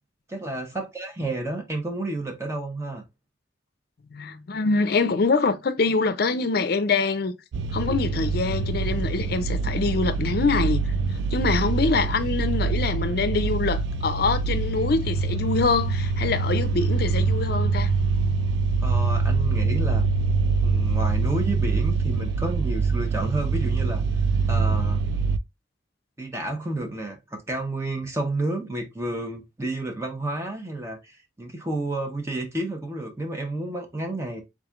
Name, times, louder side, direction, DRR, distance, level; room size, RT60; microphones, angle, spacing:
voice 1, 0.3-3.0 18.8-20.0 20.6-24.0 24.5-25.0 26.2-34.4, right 1 dB, 15° right, 0.7 m, -31 dB
voice 2, 4.1-7.4 7.7-17.9, left 4 dB, 55° left, 0.5 m, -25 dB
sound 1, 7.5-25.4, right 4 dB, 65° right, 0.3 m, -24 dB
3.6 x 3.1 x 2.4 m
head